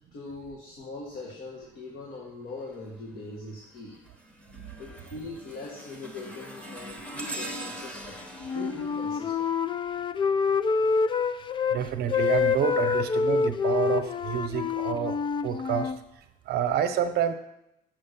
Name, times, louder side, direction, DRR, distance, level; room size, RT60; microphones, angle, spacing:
voice 1, 0.1-4.0 4.8-9.5 12.8-12.9, left 2 dB, 65° left, -2 dB, 1.7 m, -41 dB
sound 1, 2.6-3.0 3.5-10.3 11.5-13.8 14.4-14.6 15.5-15.6, right 1 dB, 5° left, 1.0 m, -43 dB
Wind instrument woodwind instrument, 8.4-11.8 12.1-16.0, left 5 dB, 30° left, 0.4 m, -26 dB
voice 2, 11.7-15.2 15.4-15.9 16.5-17.3, right 9 dB, 70° right, 8 dB, 0.8 m, -28 dB
6.2 x 5.2 x 6.7 m, 0.84 s
cardioid pair, 110°, 17 cm